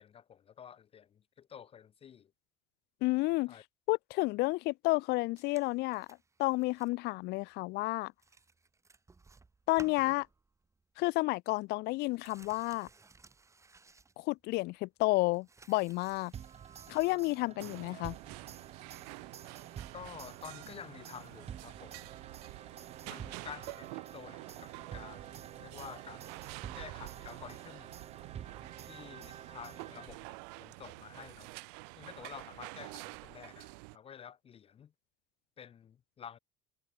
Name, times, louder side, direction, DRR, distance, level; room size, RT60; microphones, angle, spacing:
voice 1, 0.0-2.3 3.5-3.6 19.9-22.0 23.0-26.3 26.7-27.9 28.9-31.5 32.0-34.9 35.6-36.4, left 8 dB, 30° left, 0.9 m, -50 dB
voice 2, 3.0-3.6 3.9-6.1 6.4-8.1 9.7-10.3 11.0-12.9 14.2-16.3 16.9-18.2, left 22 dB, 55° left, 0.4 m, -31 dB
sound 1, 5.4-7.0 7.3-7.5 7.9-8.0 8.2-10.8 11.1-11.2 11.5-14.6 15.0-17.1 18.1-18.2, right 4 dB, 15° right, 4.7 m, -59 dB
sound 2, 16.3-30.5, right 8 dB, 30° right, 2.2 m, -49 dB
sound 3, 17.6-34.0, right 38 dB, 85° right, 1.0 m, -48 dB
cardioid pair, 140°, 21 cm